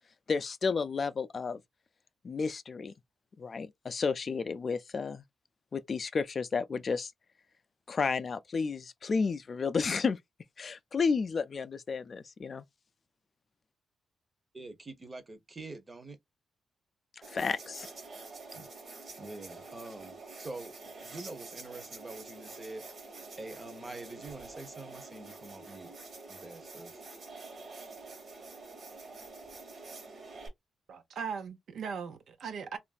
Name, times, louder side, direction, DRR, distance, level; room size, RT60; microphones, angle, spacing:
voice 1, 0.3-1.6 2.2-2.9 3.4-5.2 5.7-7.1 7.9-10.2 10.6-12.6 17.3-17.9, left 5 dB, 45° left, 0.3 m, -32 dB
voice 2, 14.5-16.2 18.5-18.7 19.2-22.8 23.4-25.9 26.3-27.0, right 2 dB, 25° right, 0.8 m, -45 dB
sound 1, 17.2-30.5, right 3 dB, 55° right, 1.2 m, -47 dB
voice 3, 30.9-32.8, right 6 dB, 70° right, 0.6 m, -38 dB
3.1 x 2.5 x 2.3 m
cardioid pair, 95°, 0 cm